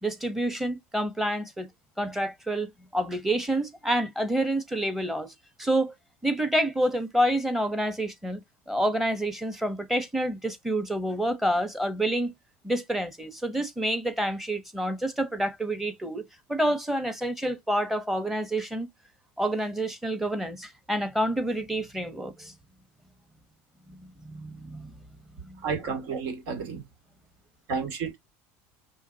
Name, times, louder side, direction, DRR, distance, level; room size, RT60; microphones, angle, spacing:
voice 1, 0.0-1.7 2.0-5.3 5.6-5.9 6.2-8.4 8.7-12.3 12.6-16.2 16.5-18.9 19.4-22.5 23.9-24.9 25.4-25.6, right 1 dB, 5° right, 1.1 m, -28 dB
voice 2, 25.6-26.8 27.7-28.2, right 5 dB, 70° right, 2.4 m, -31 dB
5.6 x 3.1 x 2.8 m
supercardioid pair, 115°, 6 cm